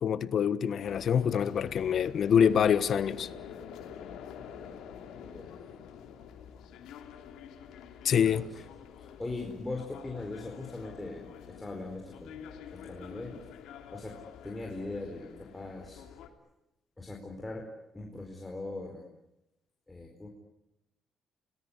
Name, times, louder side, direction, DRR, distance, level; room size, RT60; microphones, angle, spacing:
voice 1, 0.0-3.3 8.0-8.4, left 8 dB, 60° left, 1.2 m, -25 dB
sound 1, 0.8-16.3, left 8 dB, 85° left, 2.9 m, -47 dB
voice 2, 5.1-5.7 8.1-8.5 9.0-13.4 13.9-14.2 14.4-16.0 17.0-17.7 17.9-19.0 19.9-20.3, left 2 dB, 15° left, 4.5 m, -40 dB
28.0 x 19.5 x 9.8 m
cardioid pair, 90°, 0 cm